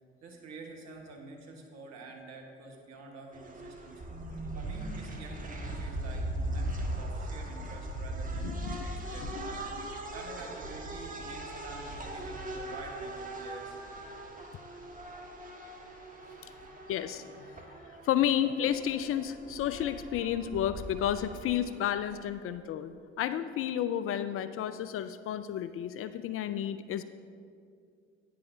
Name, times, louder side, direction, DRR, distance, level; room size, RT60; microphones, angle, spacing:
voice 1, 0.2-4.0 4.5-13.8 16.3-16.7 17.1-17.4, right 3 dB, 55° right, 1 dB, 1.5 m, -48 dB
sound 1, 3.3-22.3, right 1 dB, 25° right, 1.4 m, -40 dB
voice 2, 8.4-8.8 9.2-9.5 9.8-9.9 16.9-17.2 17.7-17.8 18.0-27.0, left 10 dB, 45° left, 13 dB, 0.4 m, -31 dB
10.5 x 9.4 x 2.7 m, 2.3 s
hypercardioid pair, 50°, 32 cm